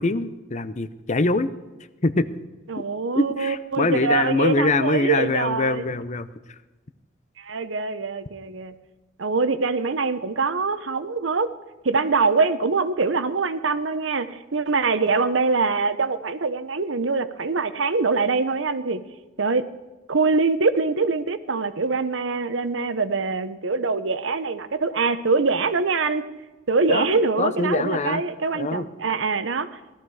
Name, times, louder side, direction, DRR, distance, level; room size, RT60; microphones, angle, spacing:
voice 1, 0.0-1.5 2.0-2.3 3.1-6.3 26.9-27.1 27.4-28.2 28.5-28.9, left 2 dB, 40° left, 13 dB, 0.7 m, -23 dB
voice 2, 2.7-5.9 7.4-8.7 9.2-11.5 11.8-19.0 19.4-19.7 20.1-26.2 26.7-29.8, right 4 dB, 75° right, 12 dB, 0.8 m, -24 dB
17.0 x 13.0 x 4.8 m, 1.2 s
head